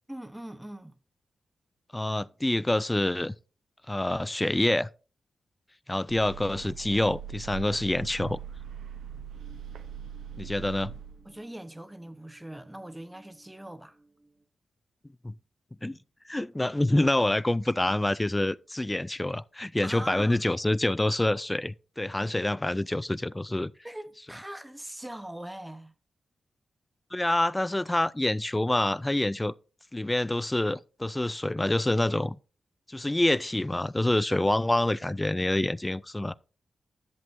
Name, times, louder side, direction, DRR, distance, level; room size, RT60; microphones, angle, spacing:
voice 1, 0.1-1.0 11.2-14.0 19.8-20.4 23.8-25.9, right 1 dB, 10° right, 0.9 m, -41 dB
voice 2, 1.9-3.3 3.9-4.9 5.9-8.4 10.4-10.9 15.2-15.3 15.8-16.0 16.3-23.7 27.1-29.5 29.9-32.4 32.9-36.4, left 1 dB, 15° left, 0.4 m, -27 dB
sound 1, 6.1-11.4, right 8 dB, 85° right, 0.7 m, -41 dB
sound 2, 9.3-14.4, right 2 dB, 30° right, 2.1 m, -61 dB
11.0 x 7.6 x 2.6 m
cardioid pair, 50°, 0 cm